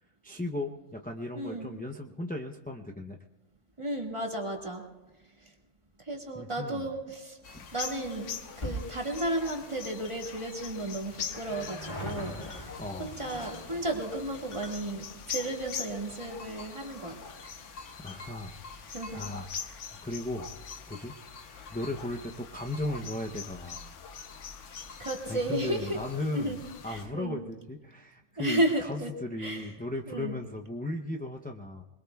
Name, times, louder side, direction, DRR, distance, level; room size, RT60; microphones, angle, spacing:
voice 1, 0.2-3.2 6.3-6.9 7.5-7.6 12.8-13.2 18.0-18.5 19.1-19.5 20.0-20.5 20.9-21.2 21.7-23.9 25.3-31.8, left 1 dB, 10° left, 2 dB, 0.4 m, -36 dB
voice 2, 1.3-1.7 3.8-4.8 6.1-7.4 7.7-8.3 8.6-17.1 18.9-19.2 25.0-26.0 26.3-26.6 26.9-27.4 28.4-29.1 29.4-29.7 30.1-30.4, right 1 dB, 25° right, 0 dB, 2.0 m, -33 dB
sound 1, 7.4-27.1, left 6 dB, 85° left, 1.2 m, -43 dB
sound 2, 8.1-20.6 20.9-21.0 21.9-22.0 22.2-22.3 22.5-22.6, equal, 40° left, 2.1 m, -45 dB
25.5 x 21.5 x 2.3 m, 1.1 s
omnidirectional pair, 1.2 m